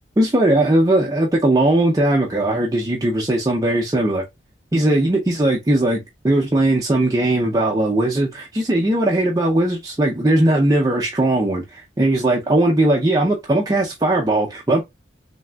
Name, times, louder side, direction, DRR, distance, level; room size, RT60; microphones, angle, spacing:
voice 1, 0.2-4.2 4.7-14.8, right 1 dB, 20° right, 0.5 m, -18 dB
3.3 x 2.6 x 2.2 m
head